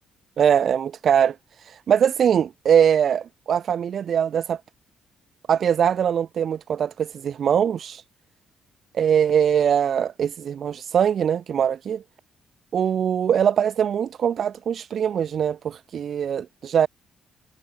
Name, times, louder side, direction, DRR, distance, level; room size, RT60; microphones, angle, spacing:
voice 1, 0.4-4.6 5.5-8.0 8.9-12.0 12.7-16.9, right 8 dB, 50° right, 1.0 m, -22 dB
cardioid pair, 120°, 0 cm